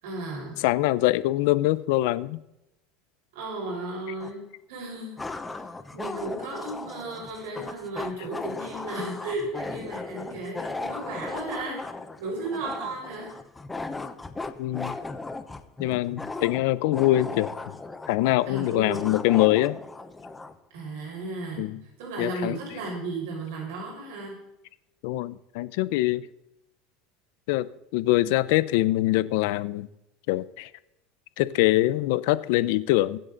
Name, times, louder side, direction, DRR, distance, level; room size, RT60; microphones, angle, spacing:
voice 1, 0.0-0.6 3.3-5.2 5.5-5.6 5.9-11.8 12.2-13.3 18.5-19.1 20.7-21.7 22.0-24.3, right 2 dB, 75° right, 6.2 m, -34 dB
voice 2, 0.6-2.4 14.6-15.0 15.8-17.8 18.1-19.8 21.6-21.8 22.2-22.6 25.0-26.3 27.5-29.9 30.3-30.7 31.4-33.2, left 16 dB, 70° left, 0.7 m, -24 dB
sound 1, 4.2-4.3 5.2-20.6, left 3 dB, 10° left, 0.9 m, -37 dB
22.5 x 7.8 x 4.0 m
supercardioid pair, 140°, 0 cm